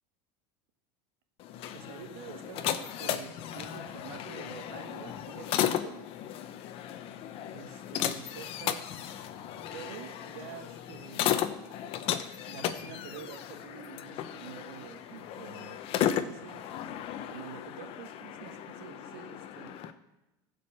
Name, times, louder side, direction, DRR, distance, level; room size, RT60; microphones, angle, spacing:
sound 1, 1.4-19.9, left 10 dB, 50° left, 0.9 m, -35 dB
voice 1, 1.7-6.1 7.5-9.3 9.7-11.8 12.4-19.8, right 9 dB, 80° right, 7 dB, 1.5 m, -48 dB
15.0 x 5.1 x 7.1 m, 0.95 s
supercardioid pair, 125°, 12 cm